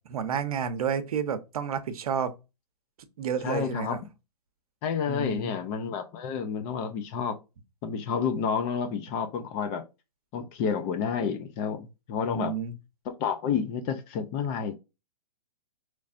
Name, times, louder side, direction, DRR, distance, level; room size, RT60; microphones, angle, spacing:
voice 1, 0.1-2.3 3.2-4.0 5.1-5.6 12.2-12.7, right 7 dB, 65° right, 0.7 m, -30 dB
voice 2, 3.4-4.0 4.8-7.4 7.8-9.9 10.3-12.6 13.1-14.7, left 6 dB, 30° left, 0.5 m, -30 dB
4.0 x 3.2 x 2.5 m
hypercardioid pair, 130°, 20 cm